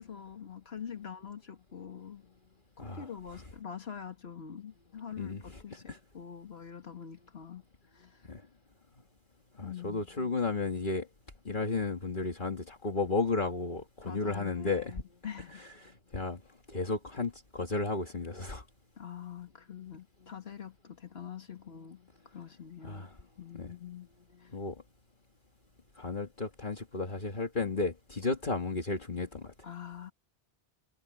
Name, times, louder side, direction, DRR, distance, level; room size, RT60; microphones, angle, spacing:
voice 1, 0.0-2.3 2.8-7.6 7.9-8.3 9.6-10.1 14.1-15.6 19.0-23.1 23.4-24.1 24.4-24.5 29.6-30.1, left 8 dB, 70° left, 2.0 m, -45 dB
voice 2, 5.2-6.0 8.3-8.4 9.6-11.1 11.5-15.0 15.8-16.4 16.7-18.6 22.8-23.2 23.6-23.7 24.5-24.8 26.0-29.5, left 3 dB, 50° left, 2.0 m, -33 dB
omnidirectional pair, 1.1 m